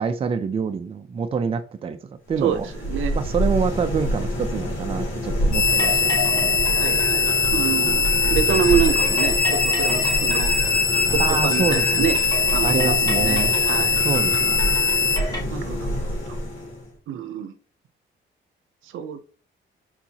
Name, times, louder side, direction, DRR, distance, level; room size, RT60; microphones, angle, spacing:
voice 1, 0.0-2.7 3.1-6.6 11.2-12.1 12.6-13.5 14.0-14.6, right 5 dB, 30° right, 0.4 m, -26 dB
sound 1, 2.3-16.9, equal, 75° left, 2.1 m, -27 dB
voice 2, 2.4-3.2 6.8-10.5 11.1-12.2 12.5-14.0 15.5-15.9 16.3-16.4 17.1-17.5 18.8-19.2, right 9 dB, 80° right, 0.6 m, -27 dB
sound 2, 5.5-15.2, left 4 dB, 45° left, 1.1 m, -21 dB
sound 3, 5.7-15.4, left 1 dB, 20° left, 1.9 m, -32 dB
4.4 x 3.9 x 2.8 m
cardioid pair, 135°, 20 cm